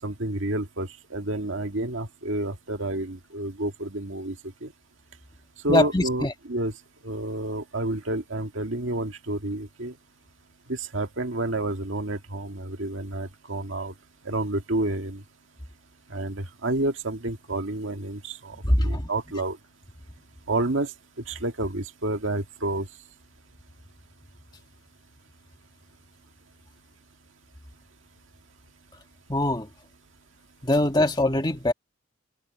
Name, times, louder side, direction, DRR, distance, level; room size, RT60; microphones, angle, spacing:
voice 1, 0.0-4.4 4.6-4.7 5.6-6.7 7.0-9.9 10.7-13.9 14.3-15.2 16.1-19.6 20.5-20.9 21.2-22.9, right 2 dB, 70° right, 1.9 m, -29 dB
voice 2, 5.7-6.3 18.6-19.1 29.3-29.7 30.6-31.7, left 1 dB, 20° left, 1.8 m, -22 dB
head